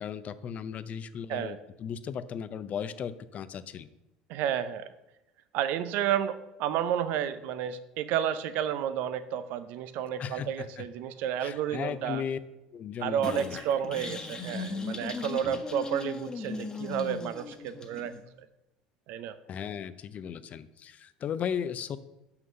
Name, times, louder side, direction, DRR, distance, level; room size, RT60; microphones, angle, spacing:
voice 1, 0.0-3.9 10.2-10.8 11.4-12.4 12.7-13.6 15.4-15.6 19.5-22.0, left 8 dB, 45° left, 13 dB, 0.6 m, -36 dB
voice 2, 4.3-4.9 5.5-12.2 13.0-18.1 19.1-19.4, right 9 dB, 65° right, 13 dB, 0.7 m, -31 dB
sound 1, 13.2-18.2, left 4 dB, 25° left, 1.3 m, -37 dB
6.1 x 5.8 x 6.8 m, 0.95 s
hypercardioid pair, 80°, 3 cm